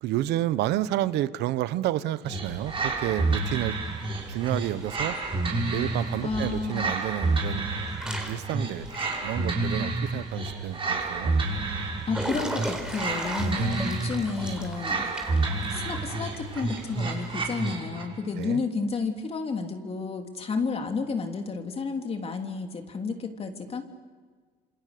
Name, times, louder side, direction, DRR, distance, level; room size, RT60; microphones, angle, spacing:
voice 1, 0.0-3.8 4.3-5.2 5.7-7.7 8.3-8.9 9.2-11.3 13.5-13.8 18.4-18.6, right 14 dB, 85° right, 15 dB, 1.1 m, -30 dB
sound 1, 2.2-18.2, right 3 dB, 30° right, 6.0 m, -30 dB
Water / Splash splatter / Drip, 2.5-17.7, right 1 dB, 5° right, 4.7 m, -41 dB
voice 2, 6.2-6.9 12.1-15.1 15.7-23.8, left 4 dB, 35° left, 4 dB, 3.3 m, -31 dB
28.0 x 27.0 x 6.8 m, 1.5 s
cardioid pair, 110°, 17 cm